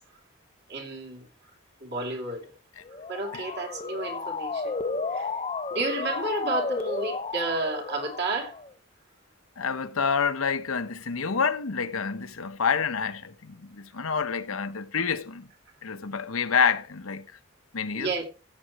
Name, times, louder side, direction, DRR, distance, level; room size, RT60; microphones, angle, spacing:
voice 1, 0.7-1.3 1.8-2.5 3.1-4.8 5.1-5.3 5.7-8.5 17.9-18.3, right 2 dB, 50° right, 2.7 m, -31 dB
Motor vehicle (road) / Siren, 2.8-8.7, left 4 dB, 25° left, 0.6 m, -33 dB
voice 2, 9.6-15.5 15.8-17.2 17.7-18.1, left 6 dB, 80° left, 1.0 m, -28 dB
15.0 x 8.5 x 3.0 m
head